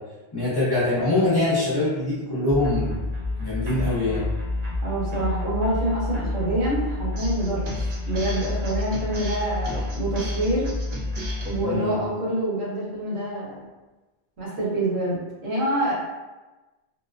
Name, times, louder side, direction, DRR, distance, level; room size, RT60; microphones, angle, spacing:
voice 1, 0.3-2.9 3.4-4.3 11.6-11.9, left 2 dB, 25° left, -10 dB, 0.7 m, -23 dB
sound 1, 2.5-11.6, left 2 dB, 55° right, 0.5 m, -29 dB
voice 2, 4.8-7.7 8.1-10.7 11.4-13.6 14.4-15.9, right 1 dB, 85° right, -6 dB, 1.1 m, -26 dB
2.5 x 2.2 x 2.3 m, 1.2 s
omnidirectional pair, 1.1 m